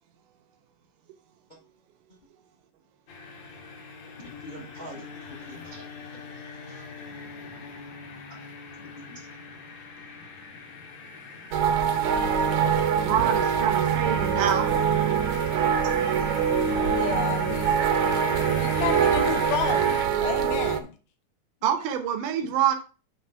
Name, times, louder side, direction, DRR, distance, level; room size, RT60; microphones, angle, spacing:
sound 1, 3.1-20.1, left 4 dB, 65° left, 2.5 m, -41 dB
voice 1, 4.2-6.2 6.7-6.8 8.2-8.4 8.8-9.5 15.9-16.8 17.4-17.9 20.1-20.4 21.8-21.9 22.4-22.5, equal, 45° left, -1 dB, 0.6 m, -46 dB
sound 2, 11.5-20.8, right 7 dB, 75° right, 1.4 m, -24 dB
voice 2, 13.0-14.7 21.6-22.8, right 9 dB, 90° right, 4 dB, 2.4 m, -26 dB
voice 3, 16.7-17.7 18.6-20.9, left 8 dB, 90° left, 7 dB, 2.6 m, -32 dB
9.0 x 3.4 x 5.6 m, 0.35 s
omnidirectional pair, 3.6 m